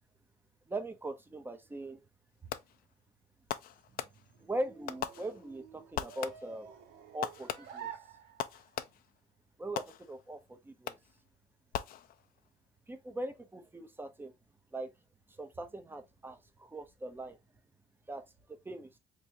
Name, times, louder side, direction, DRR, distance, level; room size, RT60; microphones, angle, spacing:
voice 1, 0.7-2.0 4.4-6.7 7.1-7.9 9.6-11.0 12.9-14.3 14.7-14.9 15.4-17.4 18.1-18.2 18.6-18.9, right 1 dB, 10° right, 0.7 m, -40 dB
Fireworks, 2.5-2.9 3.5-4.5 4.9-5.7 6.0-6.7 7.2-9.2 9.8-10.4 10.9-11.3 11.7-12.5, left 11 dB, 60° left, 0.5 m, -41 dB
sound 1, 3.8-8.8, right 9 dB, 75° right, 0.8 m, -50 dB
3.6 x 3.0 x 2.8 m
cardioid pair, 110°, 17 cm